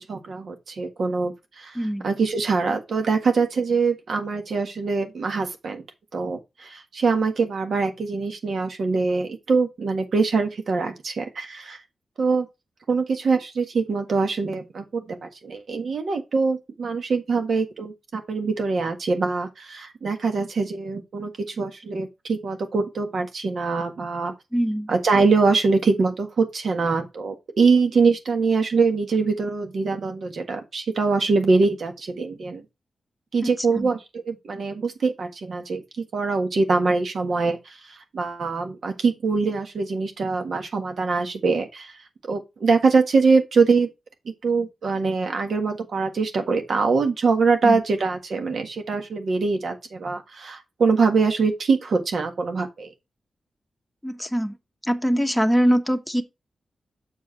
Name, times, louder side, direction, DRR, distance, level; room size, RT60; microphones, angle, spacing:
voice 1, 0.0-5.8 6.1-11.8 12.2-12.5 12.9-24.3 24.9-32.6 33.3-35.8 36.1-41.9 42.3-43.9 44.4-52.9, right 4 dB, 70° right, 1.5 m, -23 dB
voice 2, 1.7-2.1 24.5-24.9 33.4-33.5 33.7-33.9 47.6-47.8 54.0-54.6 54.8-56.2, equal, ahead, 1.0 m, -22 dB
7.2 x 4.8 x 4.1 m
cardioid pair, 80°, 0 cm